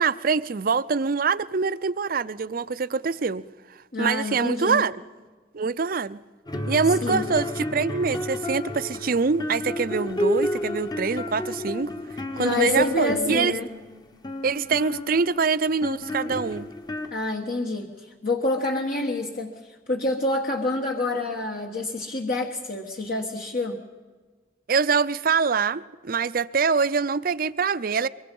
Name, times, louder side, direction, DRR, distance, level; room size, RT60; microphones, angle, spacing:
voice 1, 0.0-3.4 4.0-5.0 5.5-6.2 6.7-11.9 12.4-13.5 14.4-16.7 24.7-28.1, right 5 dB, 55° right, 0.6 m, -24 dB
voice 2, 3.9-4.8 7.0-7.2 12.3-13.7 17.1-19.5 19.9-23.8, left 2 dB, 55° left, 1.4 m, -27 dB
sound 1, 6.5-17.1, left 1 dB, 25° left, 1.1 m, -31 dB
23.5 x 23.0 x 5.4 m
head